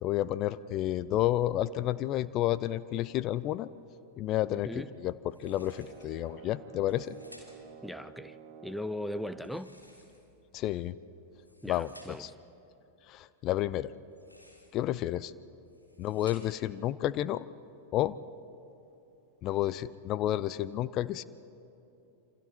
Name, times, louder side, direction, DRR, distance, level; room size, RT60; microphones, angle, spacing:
voice 1, 0.0-3.7 4.2-4.7 5.0-7.2 10.5-11.0 11.7-12.3 13.1-13.9 14.7-15.3 16.0-17.4 17.9-18.2 19.4-21.2, left 13 dB, 35° left, 0.5 m, -30 dB
sound 1, 5.3-6.2 6.8-7.8 9.3-10.4 11.2-12.4 14.0-14.9 15.5-16.7, left 1 dB, 90° left, 3.2 m, -57 dB
sound 2, 5.4-9.6, right 8 dB, 40° right, 1.6 m, -50 dB
voice 2, 7.8-8.4 8.6-9.7 11.6-12.2, left 1 dB, ahead, 0.7 m, -38 dB
28.0 x 26.5 x 4.4 m
figure-of-eight pair, 90°, 0 cm